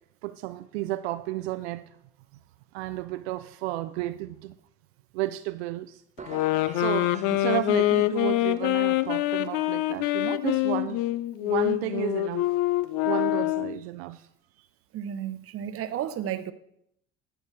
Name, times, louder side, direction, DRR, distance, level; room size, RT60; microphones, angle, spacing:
voice 1, 0.2-1.8 2.7-4.5 5.1-6.0 6.7-11.0 11.4-12.5 13.0-14.2 14.6-14.7, right 16 dB, 75° right, 0.5 m, -32 dB
sound 1, 6.2-8.3, right 5 dB, 20° right, 1.2 m, -47 dB
sound 2, 6.3-13.8, left 16 dB, 65° left, 0.6 m, -25 dB
voice 2, 14.9-16.5, right 10 dB, 45° right, 0.8 m, -32 dB
10.5 x 8.9 x 3.2 m
hypercardioid pair, 70°, 32 cm